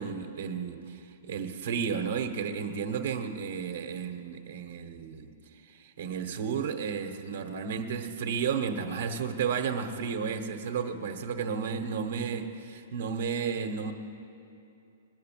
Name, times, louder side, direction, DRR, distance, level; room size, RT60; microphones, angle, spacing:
voice 1, 0.0-5.3 5.6-13.9, right 6 dB, 75° right, 5 dB, 1.1 m, -33 dB
20.0 x 8.3 x 7.4 m, 2.6 s
hypercardioid pair, 160°, 0 cm